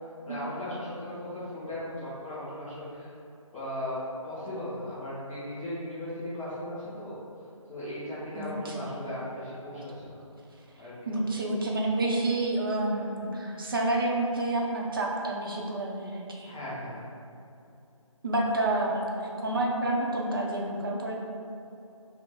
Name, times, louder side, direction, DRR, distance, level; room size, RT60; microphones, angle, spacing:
voice 1, 0.2-3.1 3.5-4.0 4.2-7.1 7.7-10.2 10.8-11.1 16.4-17.0, left 1 dB, 5° left, -19 dB, 0.4 m, -37 dB
voice 2, 8.3-8.8 11.1-16.5 18.2-21.3, right 2 dB, 40° right, -1 dB, 0.6 m, -29 dB
5.7 x 2.0 x 3.7 m, 2.7 s
figure-of-eight pair, 165°, 17 cm